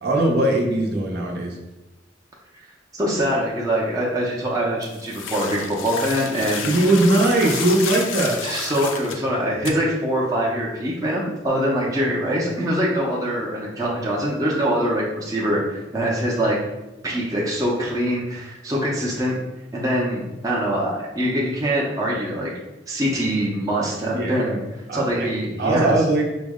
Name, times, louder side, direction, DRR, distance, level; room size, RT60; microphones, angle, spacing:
voice 1, 0.0-1.6 6.6-8.4 24.1-24.5 24.9-25.3 25.6-26.2, right 2 dB, 55° right, -1 dB, 0.7 m, -20 dB
voice 2, 2.9-6.6 8.4-16.6 17.0-19.4 19.7-22.5 22.9-24.6 24.9-26.2, equal, 20° right, -4 dB, 0.6 m, -23 dB
sound 1, 4.8-9.2 9.6-9.7, left 5 dB, 85° left, 0.5 m, -30 dB
5.4 x 2.0 x 3.5 m, 1.0 s
head